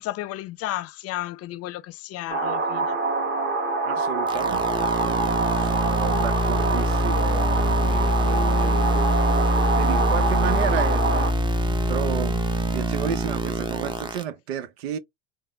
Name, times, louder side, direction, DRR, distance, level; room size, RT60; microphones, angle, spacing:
voice 1, 0.0-3.0, left 15 dB, 50° left, 0.6 m, -33 dB
sound 1, 2.3-11.3, right 3 dB, 35° right, 1.4 m, -26 dB
voice 2, 3.9-12.4 12.7-15.0, right 9 dB, 80° right, 0.8 m, -32 dB
sound 2, 4.3-14.2, equal, 15° right, 0.7 m, -24 dB
3.7 x 2.1 x 3.1 m
hypercardioid pair, 85°, 31 cm